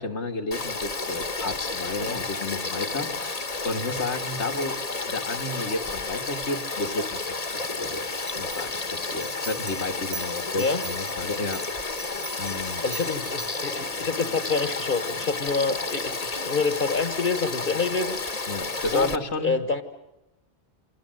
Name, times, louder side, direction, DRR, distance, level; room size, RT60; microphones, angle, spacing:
voice 1, 0.0-4.8 5.1-8.1 8.4-11.9 12.4-12.8 18.5-19.6, left 2 dB, 90° left, 5 dB, 2.1 m, -32 dB
Frog / Stream, 0.5-19.2, left 3 dB, 35° left, 1.3 m, -31 dB
sound 1, 8.1-13.8, right 6 dB, 85° right, 1.6 m, -42 dB
voice 2, 12.8-18.2 18.9-19.8, left 4 dB, 50° left, 9 dB, 1.5 m, -27 dB
28.5 x 26.0 x 7.7 m, 0.94 s
omnidirectional pair, 1.1 m